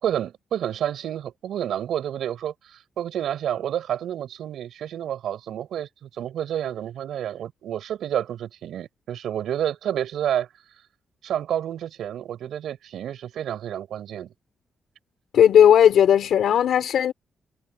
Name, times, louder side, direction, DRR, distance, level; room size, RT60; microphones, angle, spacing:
voice 1, 0.0-10.5 11.2-14.3, right 10 dB, 90° right, 5.3 m, -29 dB
voice 2, 15.3-17.1, left 9 dB, 75° left, 3.5 m, -16 dB
wide cardioid pair, 175°, 0 cm